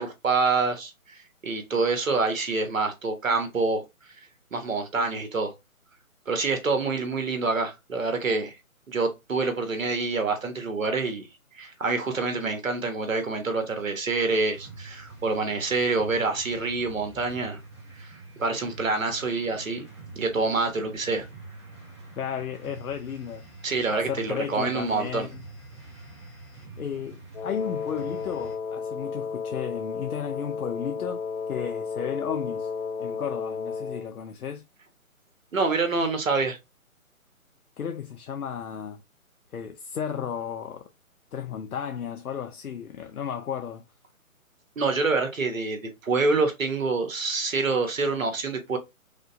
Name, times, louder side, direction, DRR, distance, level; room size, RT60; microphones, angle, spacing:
voice 1, 0.0-3.8 4.5-5.5 6.3-8.5 8.9-11.3 11.5-17.6 18.0-19.9 20.1-21.3 23.6-25.3 35.5-36.6 44.8-48.8, right 3 dB, 65° right, 1.1 m, -26 dB
sound 1, 14.3-28.6, right 3 dB, 20° right, 0.7 m, -45 dB
voice 2, 22.2-23.4 23.9-25.4 26.8-31.2 31.5-32.7 33.0-34.6 37.8-39.0 39.5-40.9 41.3-43.8, left 8 dB, 85° left, 0.6 m, -34 dB
Wind instrument woodwind instrument, 27.3-34.1, left 5 dB, 40° left, 0.7 m, -33 dB
4.9 x 2.0 x 2.5 m
figure-of-eight pair, 150°, 43 cm